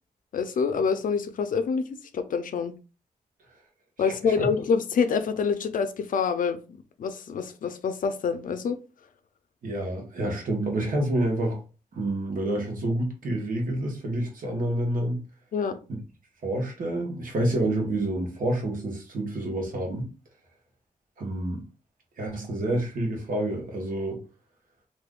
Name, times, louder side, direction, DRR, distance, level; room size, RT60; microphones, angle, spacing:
voice 1, 0.3-1.8 2.1-2.7 4.0-8.8 15.5-15.8, left 5 dB, 70° left, 0.4 m, -26 dB
voice 2, 9.6-11.6 11.9-15.2 16.4-20.1 21.2-21.6 22.2-24.2, right 1 dB, 70° right, 1.1 m, -28 dB
2.6 x 2.4 x 3.6 m
wide cardioid pair, 140°, 14 cm